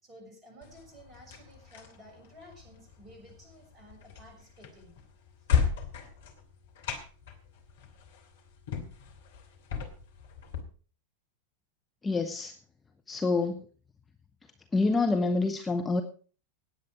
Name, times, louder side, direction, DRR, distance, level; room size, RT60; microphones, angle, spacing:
voice 1, 0.0-5.0, equal, 20° right, 1 dB, 6.9 m, -53 dB
sound 1, 0.6-10.6, left 7 dB, 60° left, 2.7 m, -36 dB
voice 2, 12.0-12.5 13.1-13.6 14.7-16.0, left 3 dB, 15° left, 5 dB, 1.1 m, -27 dB
18.5 x 8.3 x 4.9 m, 0.39 s
figure-of-eight pair, 90°, 0 cm